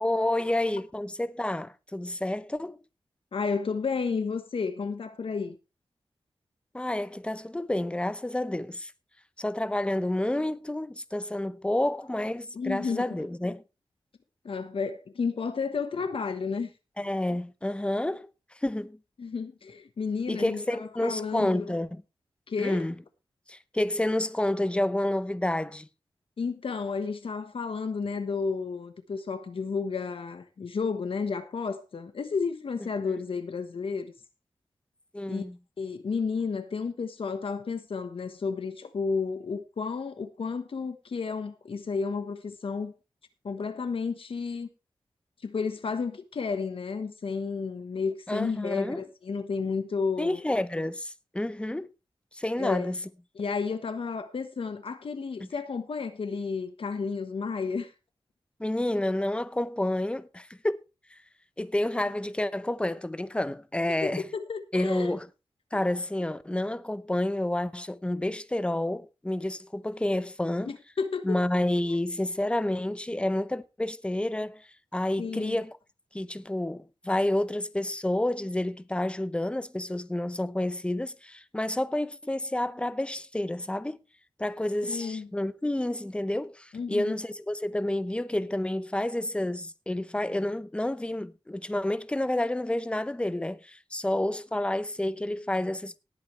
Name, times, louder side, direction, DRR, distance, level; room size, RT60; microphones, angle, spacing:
voice 1, 0.0-2.8 6.7-8.9 9.4-13.6 17.0-19.0 20.3-22.0 22.6-23.0 23.5-25.9 33.1-33.2 35.1-35.6 48.3-49.0 50.2-51.9 52.3-53.0 55.4-55.5 58.6-60.8 61.1-61.2 61.6-64.3 64.7-65.3 65.7-70.7 71.2-75.7 76.1-84.0 84.4-96.0, left 1 dB, 10° left, 0.7 m, -29 dB
voice 2, 3.3-5.6 12.5-13.0 14.4-16.7 19.2-21.7 22.5-22.8 26.4-34.1 35.3-35.4 35.8-42.9 43.4-44.7 45.4-50.4 52.6-52.9 53.3-57.9 64.0-65.1 65.7-65.8 70.7-71.4 75.2-75.6 84.8-85.3 86.7-87.1, left 5 dB, 70° left, 1.3 m, -32 dB
18.5 x 8.7 x 3.3 m
wide cardioid pair, 85°, 10 cm